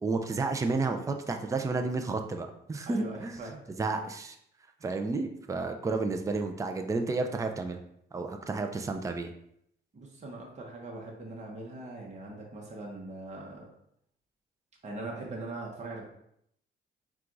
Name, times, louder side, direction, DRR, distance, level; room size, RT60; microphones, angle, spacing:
voice 1, 0.0-3.4 3.8-4.4 4.8-7.8 8.1-9.3, right 3 dB, 15° right, 5 dB, 0.4 m, -31 dB
voice 2, 2.9-3.6 4.8-4.9 9.9-13.7 14.8-16.1, right 2 dB, 35° right, -2 dB, 1.0 m, -41 dB
4.4 x 2.4 x 3.8 m, 0.74 s
cardioid pair, 90°, 20 cm